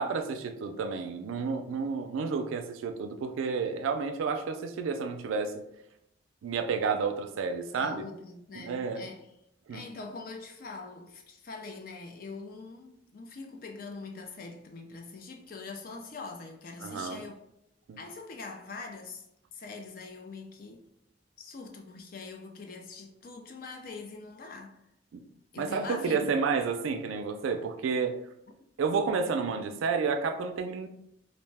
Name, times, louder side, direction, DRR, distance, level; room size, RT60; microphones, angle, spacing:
voice 1, 0.0-5.6 6.4-8.0 8.6-9.0 9.7-9.8 16.8-17.2 17.9-18.0 25.1-25.2 25.6-28.2 28.8-30.9, right 5 dB, 85° right, 0.3 m, -30 dB
voice 2, 7.7-9.3 9.7-17.4 18.0-19.3 19.5-20.9 21.4-24.8 25.5-26.3, left 4 dB, 45° left, 0.4 m, -43 dB
2.5 x 2.1 x 3.3 m
head